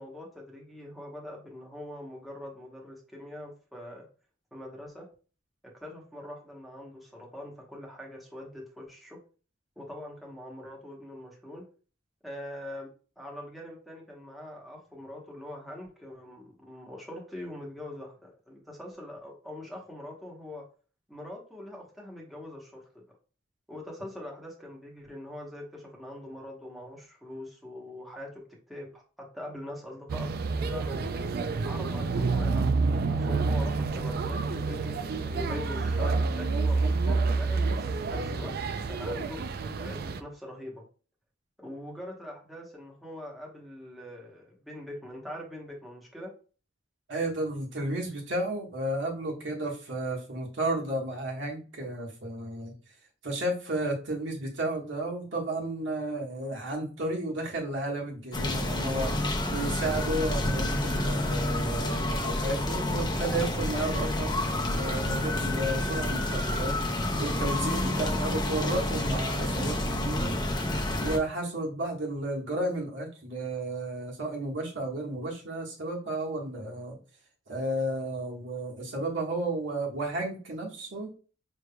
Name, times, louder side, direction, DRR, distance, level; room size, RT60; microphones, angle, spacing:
voice 1, 0.0-4.1 4.5-5.1 5.6-9.2 9.8-11.6 12.2-12.9 13.2-20.6 21.1-23.0 23.7-30.3 30.6-31.1 31.6-38.5 38.9-39.4 39.8-40.8 41.6-46.3, left 1 dB, ahead, -2 dB, 0.9 m, -43 dB
sound 1, 30.1-40.2, right 4 dB, 55° right, 0.4 m, -28 dB
voice 2, 47.1-52.7 53.2-70.3 71.0-77.0 77.5-81.1, right 1 dB, 85° right, -1 dB, 1.4 m, -33 dB
sound 2, 58.3-71.2, left 1 dB, 25° left, 0.6 m, -29 dB
5.5 x 3.2 x 2.2 m, 0.38 s
head